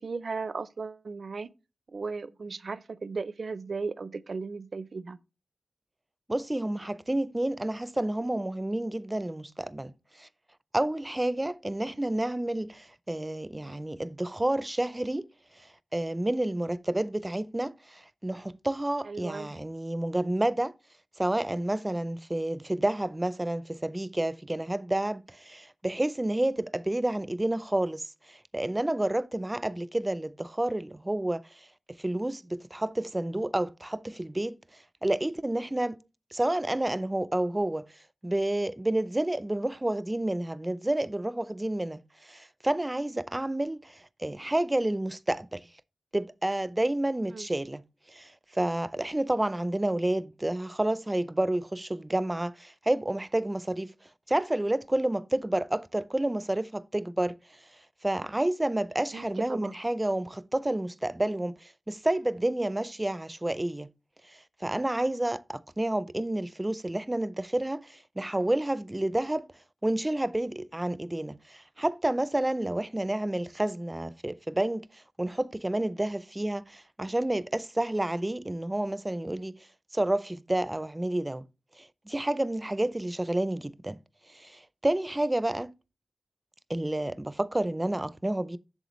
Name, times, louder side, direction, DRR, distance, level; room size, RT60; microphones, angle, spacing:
voice 1, 0.0-1.5 1.9-5.2 19.1-19.5 47.3-47.5 59.1-59.8, right 4 dB, 65° right, 0.5 m, -36 dB
voice 2, 6.3-10.3 10.7-15.3 15.6-20.7 21.2-34.6 35.0-36.0 36.3-37.9 38.2-45.7 46.1-47.8 48.1-53.9 54.3-57.4 58.0-63.9 64.3-69.5 69.8-79.5 79.9-81.5 81.8-84.0 84.3-85.7 86.7-88.6, right 1 dB, 20° right, 0.5 m, -30 dB
8.0 x 7.3 x 3.1 m
wide cardioid pair, 90°, 0 cm